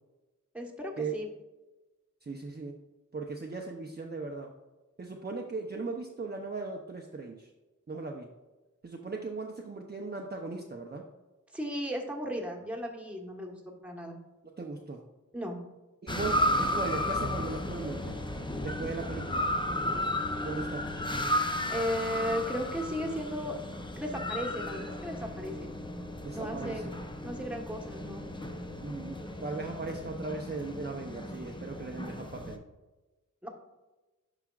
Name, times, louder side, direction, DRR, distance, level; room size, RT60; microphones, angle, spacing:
voice 1, 0.5-1.3 11.5-13.6 13.8-14.2 15.3-15.6 21.7-23.6 24.0-25.7 26.3-26.9 27.2-28.2 33.4-33.5, equal, 5° right, 1 dB, 1.2 m, -35 dB
voice 2, 2.3-2.7 3.1-4.5 5.0-7.5 7.9-8.3 8.8-11.0 14.6-15.0 16.0-18.1 18.6-19.5 20.4-20.9 26.2-26.9 28.8-29.1 29.4-32.6, right 3 dB, 30° right, 1 dB, 0.6 m, -38 dB
sound 1, 16.1-32.6, left 1 dB, 15° left, 0.6 m, -34 dB
11.5 x 4.9 x 2.4 m, 1.1 s
wide cardioid pair, 100°, 32 cm